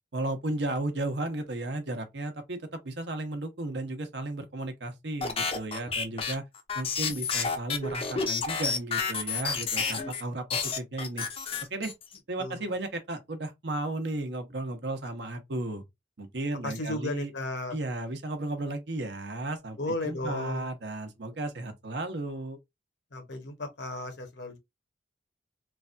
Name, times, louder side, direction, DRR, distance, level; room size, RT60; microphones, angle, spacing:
voice 1, 0.1-6.4 6.7-11.2 11.7-11.9 12.3-15.8 16.2-17.3 17.7-19.8 20.0-22.6, right 2 dB, 70° right, 0.8 m, -34 dB
sound 1, 5.2-10.2 10.5-12.2, left 5 dB, 30° left, 0.5 m, -30 dB
voice 2, 16.6-17.7 19.8-20.7 23.1-24.6, left 1 dB, 75° left, 0.9 m, -34 dB
3.2 x 2.2 x 2.5 m
head